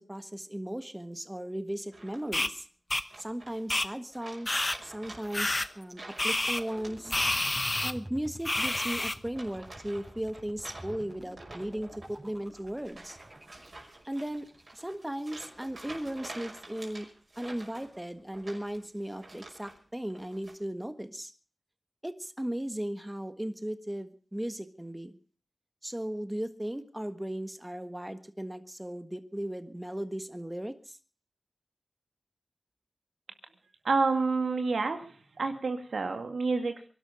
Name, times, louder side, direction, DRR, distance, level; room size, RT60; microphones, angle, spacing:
voice 1, 0.0-2.6 3.2-7.2 7.8-13.2 14.1-17.1 17.4-21.3 22.0-25.1 25.8-31.0, right 1 dB, 15° right, 9 dB, 1.6 m, -37 dB
sound 1, 1.9-2.5 3.1-3.8 4.1-7.6 7.8-8.1 8.5-9.0 9.3-19.8 20.1-20.5, right 2 dB, 55° right, 5.6 m, -49 dB
sound 2, 2.3-2.5 2.9-3.0 3.7-3.9 4.5-4.8 5.3-5.7 6.2-6.6 7.1-7.9 8.5-9.2, left 2 dB, 30° left, 1.0 m, -28 dB
sound 3, 5.8-15.8, right 1 dB, 30° right, 5.6 m, -49 dB
voice 2, 33.8-36.9, right 4 dB, 90° right, 6 dB, 2.0 m, -29 dB
23.0 x 12.0 x 5.0 m, 0.39 s
cardioid pair, 45°, 0 cm